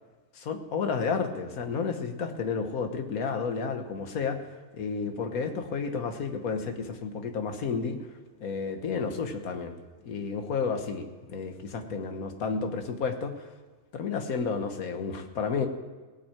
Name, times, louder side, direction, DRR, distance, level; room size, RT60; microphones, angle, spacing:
voice 1, 0.3-8.0 8.4-9.8 10.0-13.5 13.9-15.7, left 5 dB, 70° left, 7 dB, 1.6 m, -31 dB
17.0 x 6.0 x 8.8 m, 1.3 s
omnidirectional pair, 1.6 m